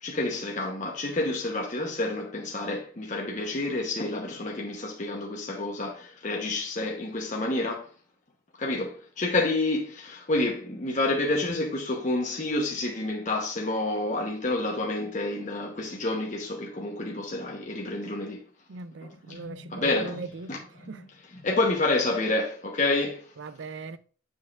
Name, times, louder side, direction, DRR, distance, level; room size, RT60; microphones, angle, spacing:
voice 1, 0.0-7.9 8.6-18.4 19.0-20.2 20.5-21.1 21.3-23.2, left 2 dB, 40° left, 0.9 m, -29 dB
voice 2, 18.7-20.6 20.9-21.0 23.4-24.0, right 4 dB, 65° right, 0.4 m, -38 dB
7.3 x 6.4 x 2.5 m
head